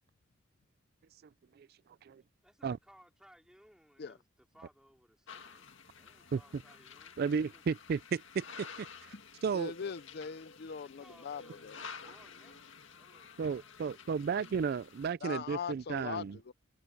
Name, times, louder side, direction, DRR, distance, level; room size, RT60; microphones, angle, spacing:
voice 1, 1.5-2.2 2.6-2.8 6.3-6.4 7.2-9.1 9.4-9.7 13.4-16.4, right 6 dB, 50° right, 0.3 m, -34 dB
voice 2, 2.4-7.2 7.5-7.6 10.8-14.1, equal, 5° right, 4.0 m, -62 dB
sound 1, 5.3-15.1, left 5 dB, 70° left, 2.0 m, -51 dB
voice 3, 9.5-11.8 15.2-16.5, left 6 dB, 50° left, 0.5 m, -41 dB
head